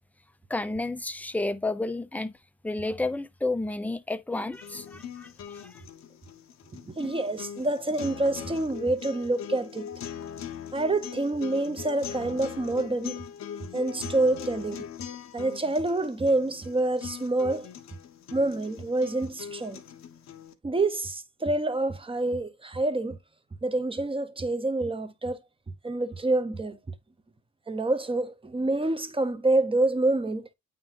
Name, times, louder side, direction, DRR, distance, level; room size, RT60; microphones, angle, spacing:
voice 1, 0.5-2.3 2.6-5.8, left 2 dB, 5° left, 0.6 m, -31 dB
sound 1, 4.5-20.5, left 8 dB, 60° left, 1.0 m, -41 dB
voice 2, 6.7-9.9 10.7-13.2 13.7-14.9 15.3-17.7 18.3-19.8 20.6-23.2 23.6-25.4 25.8-26.8 27.7-30.5, right 2 dB, 20° right, 0.9 m, -27 dB
8.7 x 3.8 x 3.0 m
cardioid pair, 90°, 30 cm